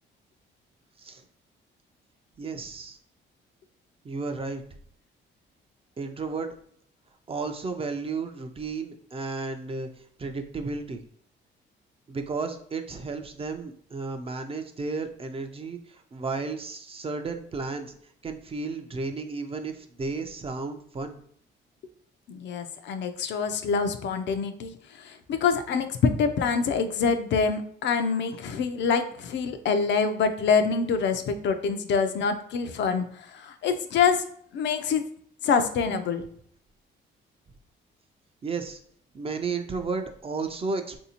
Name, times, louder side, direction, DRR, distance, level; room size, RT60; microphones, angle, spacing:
voice 1, 2.4-3.0 4.0-4.6 6.0-6.5 7.3-9.9 10.2-11.0 12.1-17.9 18.2-21.2 38.4-38.8 39.1-41.0, right 4 dB, 30° right, 6 dB, 0.4 m, -33 dB
voice 2, 22.3-34.2 34.5-35.0 35.4-36.3, left 5 dB, 65° left, 8 dB, 0.4 m, -26 dB
3.3 x 2.6 x 2.8 m, 0.63 s
cardioid pair, 90°, 20 cm